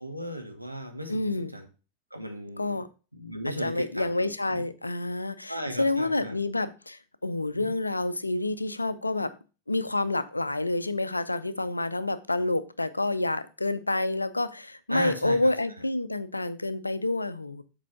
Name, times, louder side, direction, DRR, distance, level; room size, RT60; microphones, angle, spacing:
voice 1, 0.0-1.7 2.1-2.8 3.1-4.6 5.5-6.4 7.5-7.7 14.9-15.5, equal, 90° right, 1.2 m, -36 dB
voice 2, 1.1-1.5 2.6-2.9 3.5-9.4 9.7-17.6, left 2 dB, 85° left, 0.5 m, -28 dB
7.4 x 4.7 x 5.5 m
figure-of-eight pair, 90°, 0 cm